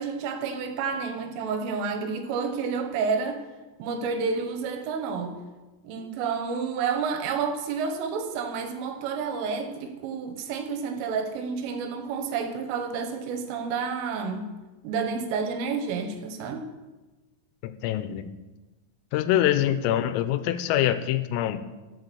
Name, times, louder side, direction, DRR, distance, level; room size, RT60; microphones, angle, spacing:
voice 1, 0.0-3.4 3.8-5.4 5.8-14.5 14.8-16.6, right 5 dB, 80° right, 3.6 m, -30 dB
voice 2, 17.6-18.3 19.1-21.6, left 12 dB, 90° left, 3.3 m, -24 dB
12.0 x 7.6 x 6.8 m
omnidirectional pair, 5.8 m